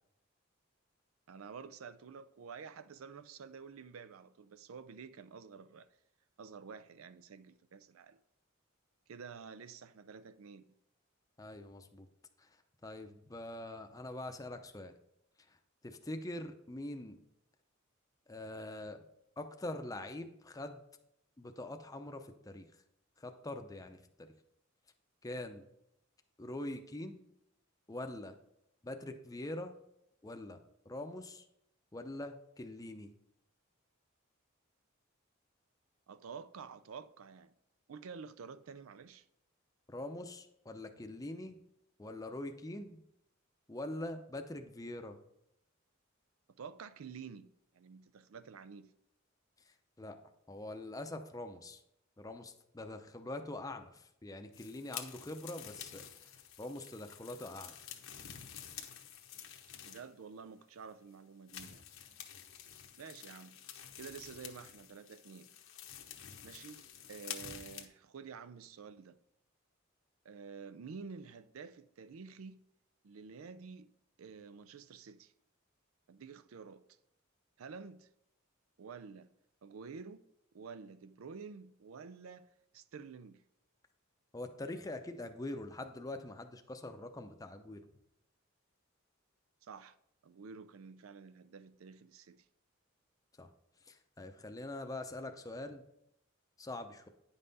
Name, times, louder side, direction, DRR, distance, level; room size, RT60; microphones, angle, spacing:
voice 1, 1.3-5.9 6.4-8.2 9.1-10.6 36.1-37.5 37.9-39.2 46.5-48.9 59.8-61.8 63.0-63.6 64.0-65.5 66.4-66.8 67.1-69.2 70.2-72.6 73.0-73.9 74.2-75.3 76.1-76.8 77.6-78.1 78.8-79.3 79.6-80.2 80.5-82.5 82.7-83.4 89.6-90.0 90.2-92.4, right 5 dB, 85° right, 0.5 m, -50 dB
voice 2, 11.4-12.1 12.4-12.5 12.8-14.9 15.8-17.2 18.3-19.0 19.4-20.8 21.4-22.7 23.2-24.3 25.2-25.6 26.4-27.2 27.9-28.4 28.8-29.7 30.2-30.6 30.9-31.4 31.9-33.1 39.9-41.6 42.0-43.0 43.7-45.2 50.0-50.2 50.5-51.8 52.2-56.0 56.6-57.8 84.3-87.9 93.4-93.5 93.9-95.8 96.6-97.1, left 1 dB, 15° left, 0.6 m, -44 dB
sound 1, 54.5-60.2 60.7-60.8 61.5-67.8, left 9 dB, 80° left, 0.9 m, -49 dB
9.7 x 5.6 x 4.0 m
head